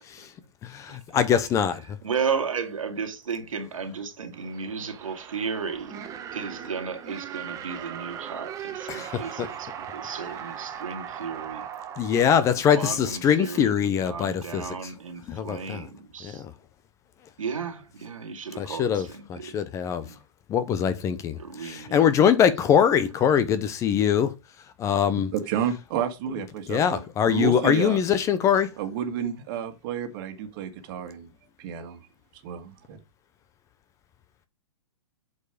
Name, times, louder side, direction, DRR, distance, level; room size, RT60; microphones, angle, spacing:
voice 1, 0.6-2.0 8.9-9.5 12.0-14.8 15.3-15.9 16.2-16.5 18.6-20.1 20.5-24.3 24.8-25.3 26.7-28.7, left 8 dB, 20° left, 0.6 m, -23 dB
voice 2, 2.0-11.7 12.7-16.4 17.4-19.6 20.0-20.2 21.4-22.1, right 6 dB, 85° right, 2.0 m, -34 dB
sound 1, 4.3-13.2, right 9 dB, 20° right, 1.0 m, -39 dB
voice 3, 25.3-28.0 28.8-31.3 31.6-32.1 32.3-33.0, right 8 dB, 40° right, 1.7 m, -31 dB
8.3 x 4.7 x 4.9 m
hypercardioid pair, 140°, 17 cm